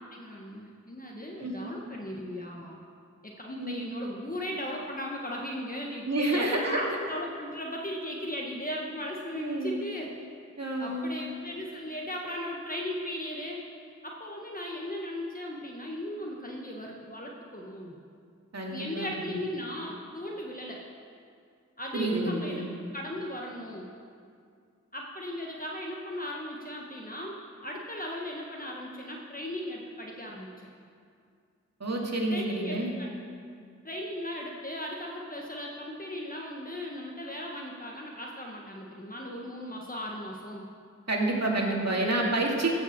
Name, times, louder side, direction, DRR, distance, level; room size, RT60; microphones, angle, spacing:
voice 1, 0.1-2.8 3.2-10.1 10.8-13.6 14.0-17.9 18.7-20.8 21.8-22.6 22.9-23.9 24.9-27.4 27.6-30.7 32.3-33.1 33.8-40.7 42.0-42.2, left 1 dB, 30° left, -1 dB, 1.4 m, -37 dB
voice 2, 1.4-1.7 3.6-3.9 6.1-7.0 9.3-9.8 10.6-11.1 18.5-19.3 21.9-22.7 31.8-32.9 41.1-42.7, right 2 dB, 60° right, -1 dB, 2.3 m, -29 dB
16.0 x 5.8 x 7.3 m, 2.3 s
wide cardioid pair, 55°, 30 cm